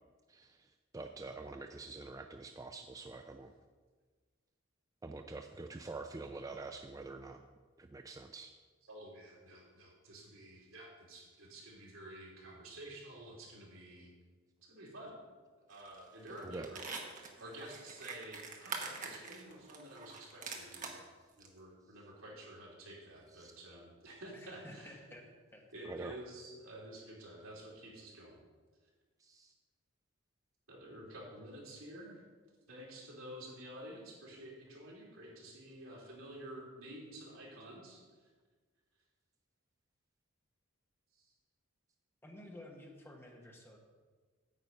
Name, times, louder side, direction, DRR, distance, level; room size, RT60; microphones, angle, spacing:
voice 1, 0.3-0.7 0.9-3.5 5.0-7.4 7.8-8.5 16.4-16.7 23.3-23.5 25.8-26.1 29.2-29.5, right 3 dB, 15° right, 6 dB, 0.3 m, -46 dB
voice 2, 8.8-14.1 14.6-15.1 15.5-16.8 17.4-20.9 21.4-25.0 25.7-28.4 30.7-32.2 32.7-38.3 41.1-41.3, right 1 dB, 75° right, -3 dB, 3.2 m, -50 dB
sound 1, 15.7-16.0 16.3-21.0 21.4-21.5, right 4 dB, 40° right, 1.2 m, -44 dB
voice 3, 24.3-25.6 42.2-43.8, left 1 dB, 10° left, 1 dB, 1.1 m, -53 dB
9.2 x 7.9 x 5.4 m, 1.4 s
head